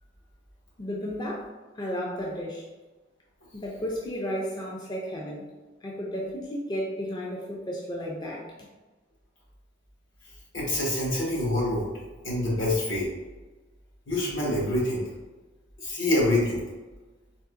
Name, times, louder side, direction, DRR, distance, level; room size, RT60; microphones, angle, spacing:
voice 1, 0.8-1.5 1.8-2.6 3.5-5.5 5.8-8.5, equal, 20° left, -2 dB, 0.4 m, -33 dB
voice 2, 10.5-11.9 12.2-13.1 14.1-15.0 15.8-16.6, left 1 dB, 75° left, -5 dB, 1.4 m, -26 dB
3.8 x 2.7 x 2.4 m, 1.2 s
head